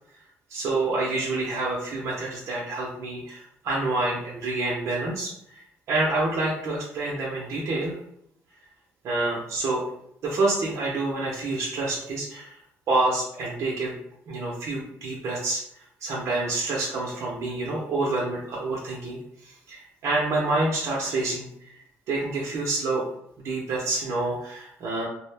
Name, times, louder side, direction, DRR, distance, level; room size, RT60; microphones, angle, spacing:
voice 1, 0.5-8.0 9.0-9.8 10.2-12.6 12.9-13.9 14.3-21.5 21.7-23.1 23.4-25.1, right 2 dB, 70° right, -4 dB, 0.6 m, -28 dB
2.4 x 2.0 x 3.2 m, 0.72 s
cardioid pair, 100°, 5 cm